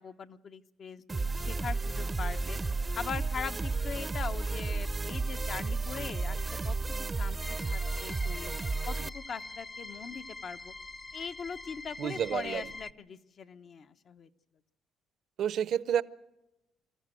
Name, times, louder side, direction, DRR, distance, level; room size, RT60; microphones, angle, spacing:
voice 1, 0.0-2.6 2.9-8.5 8.9-10.7 11.1-14.3, left 6 dB, 50° left, 9 dB, 1.0 m, -41 dB
sound 1, 1.1-9.1, right 3 dB, 20° right, 0.7 m, -32 dB
sound 2, 7.4-12.9, left 3 dB, 15° left, 0.6 m, -44 dB
voice 2, 12.0-12.7 15.4-16.0, right 9 dB, 65° right, 17 dB, 0.7 m, -30 dB
25.0 x 14.0 x 7.8 m, 0.93 s
cardioid pair, 95°, 0 cm